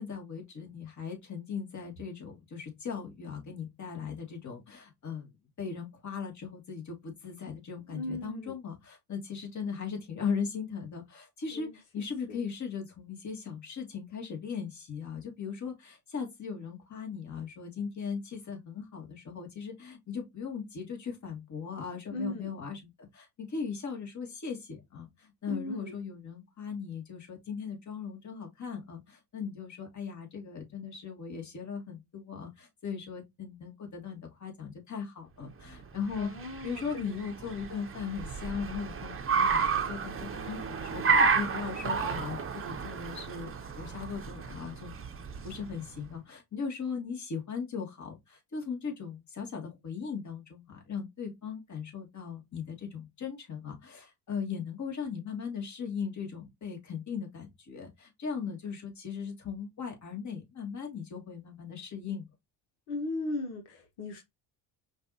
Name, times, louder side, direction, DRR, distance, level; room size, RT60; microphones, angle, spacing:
voice 1, 0.0-5.3 5.6-36.3 36.6-62.3, left 6 dB, 35° left, 1.9 m, -38 dB
voice 2, 7.9-8.5 11.5-11.7 22.1-22.4 25.5-25.9 36.2-37.1 62.9-64.2, left 2 dB, 75° left, 1.2 m, -37 dB
Car, 35.7-46.0, right 5 dB, 25° right, 0.8 m, -31 dB
5.3 x 2.5 x 2.8 m
hypercardioid pair, 65°, 48 cm